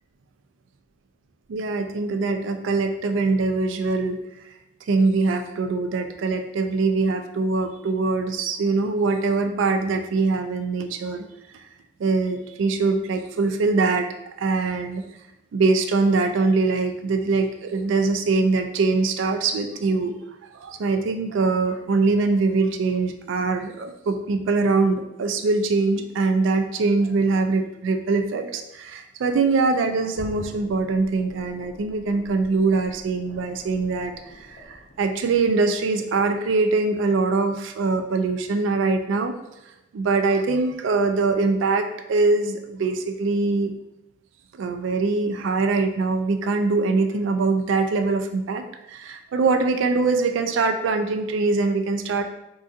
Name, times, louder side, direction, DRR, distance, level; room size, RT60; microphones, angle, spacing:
voice 1, 1.5-4.2 4.9-11.3 11.5-11.6 12.0-14.1 14.4-15.0 15.5-20.1 20.4-39.3 39.9-43.7 44.5-48.6 48.9-52.2, right 3 dB, 70° right, 6 dB, 0.3 m, -23 dB
sound 1, 30.1-35.9 36.3-36.4, left 1 dB, 55° left, 0.6 m, -45 dB
3.7 x 2.5 x 2.4 m, 0.88 s
head